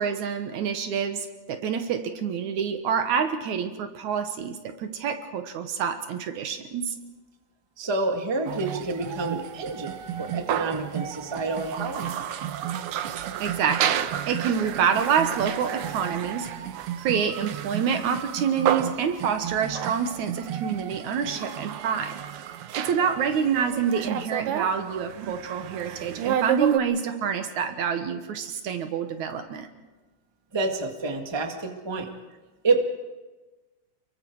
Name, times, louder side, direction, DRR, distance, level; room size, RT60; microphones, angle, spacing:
voice 1, 0.0-6.9 9.3-9.5 13.4-16.5 17.0-22.2 22.8-29.7, right 7 dB, 70° right, 7 dB, 2.6 m, -27 dB
voice 2, 7.8-12.1 30.5-32.1 32.6-32.8, right 3 dB, 15° right, 3 dB, 1.2 m, -28 dB
sound 1, 8.5-26.8, right 10 dB, 85° right, 1.2 m, -31 dB
29.0 x 22.5 x 4.8 m, 1.2 s
omnidirectional pair, 3.7 m